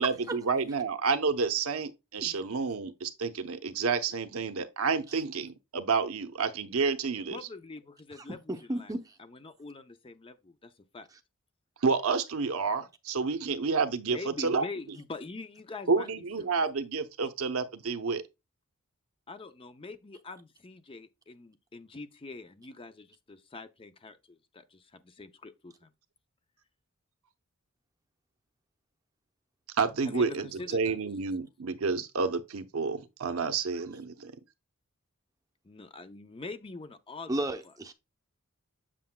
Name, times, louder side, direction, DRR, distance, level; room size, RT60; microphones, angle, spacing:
voice 1, 0.0-7.4 11.8-14.6 15.9-18.2 29.8-34.3, right 4 dB, 75° right, 0.8 m, -29 dB
voice 2, 7.3-8.9 9.2-11.1 14.0-16.5 19.3-25.9 30.0-31.0 35.6-37.3, left 3 dB, 25° left, 0.5 m, -44 dB
voice 3, 8.5-9.1 37.3-37.9, right 1 dB, 15° right, 0.7 m, -33 dB
7.5 x 6.8 x 2.2 m
head